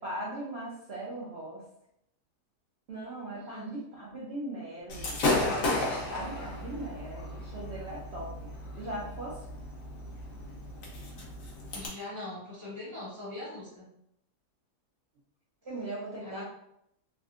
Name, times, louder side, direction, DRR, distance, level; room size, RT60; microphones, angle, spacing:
voice 1, 0.0-1.6 2.9-5.2 6.1-8.5 8.8-9.4 15.6-16.4, right 1 dB, 55° right, -6 dB, 0.7 m, -39 dB
voice 2, 3.3-3.8 11.7-13.9 16.2-16.4, left 2 dB, 15° left, -7 dB, 0.8 m, -42 dB
Gunshot gunfire / Fireworks, 4.9-11.9, left 2 dB, 60° left, 1.1 m, -34 dB
3.5 x 2.6 x 2.4 m, 0.77 s
omnidirectional pair, 1.7 m